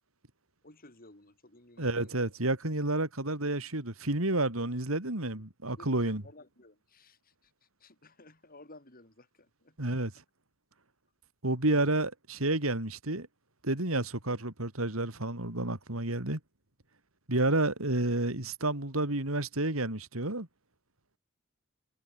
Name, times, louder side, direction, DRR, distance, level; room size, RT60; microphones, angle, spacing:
voice 1, 0.6-2.1 5.7-10.0, left 2 dB, 45° left, 7.8 m, -56 dB
voice 2, 1.8-6.2 9.8-10.1 11.4-13.3 13.6-16.4 17.3-20.5, right 2 dB, 75° right, 3.7 m, -30 dB
head